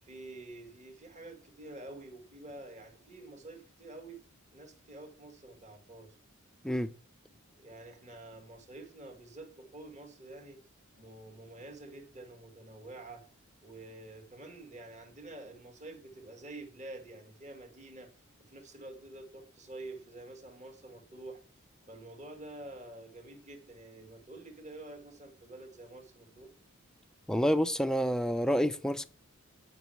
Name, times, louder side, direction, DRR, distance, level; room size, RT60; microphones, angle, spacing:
voice 1, 0.0-4.3 4.5-6.2 7.3-10.6 11.0-13.3 13.6-18.1 18.4-21.4 21.9-26.5, right 2 dB, 35° right, 1.7 m, -48 dB
voice 2, 27.3-29.1, equal, 5° left, 0.4 m, -28 dB
9.2 x 5.4 x 7.7 m
head